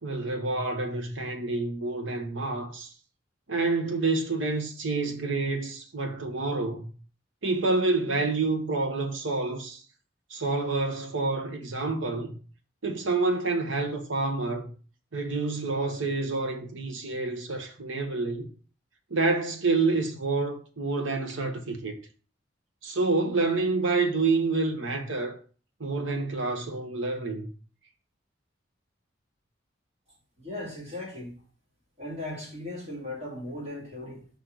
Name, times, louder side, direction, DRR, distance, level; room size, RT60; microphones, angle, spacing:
voice 1, 0.0-2.9 3.5-6.9 7.4-9.8 10.3-12.4 12.8-14.7 15.1-18.5 19.1-22.0 22.8-25.4 25.8-27.5, right 3 dB, 85° right, 1.1 m, -28 dB
voice 2, 30.4-31.4 32.0-34.3, left 1 dB, 35° right, 2.6 m, -37 dB
5.4 x 3.9 x 4.6 m
head